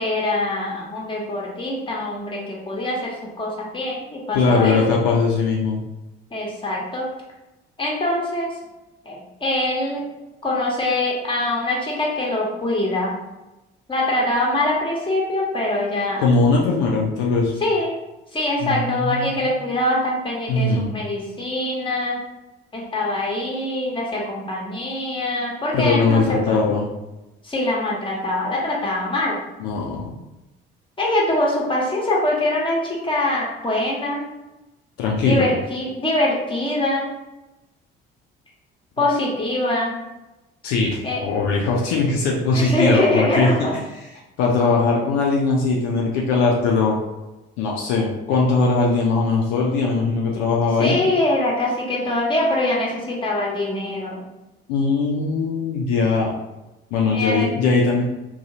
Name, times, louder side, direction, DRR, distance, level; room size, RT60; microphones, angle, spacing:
voice 1, 0.0-5.0 6.3-7.1 7.8-8.5 9.0-9.1 9.4-10.0 10.4-13.2 13.9-16.3 17.6-17.9 18.3-22.2 22.7-26.6 27.4-29.4 31.0-34.2 35.2-37.1 39.0-40.0 41.0-41.2 42.5-43.7 50.8-54.2 57.1-57.5, left 1 dB, 15° left, -3 dB, 1.0 m, -23 dB
voice 2, 4.3-5.8 16.2-17.5 18.6-19.4 20.5-20.9 25.7-26.9 29.6-30.1 35.0-35.4 40.6-43.5 44.4-47.0 47.6-51.0 54.7-56.3 56.9-58.0, left 3 dB, 65° left, -2 dB, 0.5 m, -20 dB
2.7 x 2.3 x 2.7 m, 1.0 s
hypercardioid pair, 50°, 29 cm